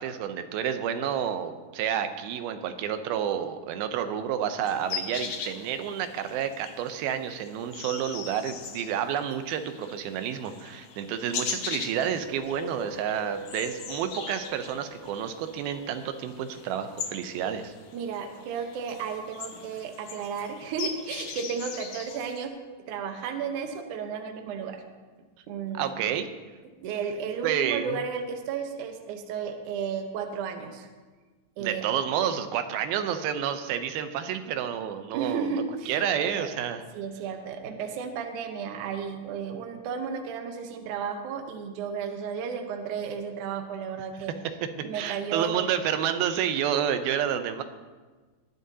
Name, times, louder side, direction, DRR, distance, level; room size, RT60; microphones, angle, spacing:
voice 1, 0.0-17.7 25.7-26.3 27.4-28.0 31.6-35.5 35.9-36.8 44.9-47.6, right 9 dB, 85° right, 9 dB, 2.6 m, -29 dB
sound 1, 4.6-22.5, left 6 dB, 75° left, 1.4 m, -40 dB
sound 2, 11.9-19.1, equal, 55° left, 1.3 m, -45 dB
voice 2, 17.9-22.5 22.9-24.8 25.5-25.9 26.8-30.9 31.6-31.9 35.1-36.5 36.9-44.3 44.8-45.7, right 6 dB, 70° right, 5 dB, 2.2 m, -33 dB
19.5 x 11.0 x 2.8 m, 1.4 s
omnidirectional pair, 4.2 m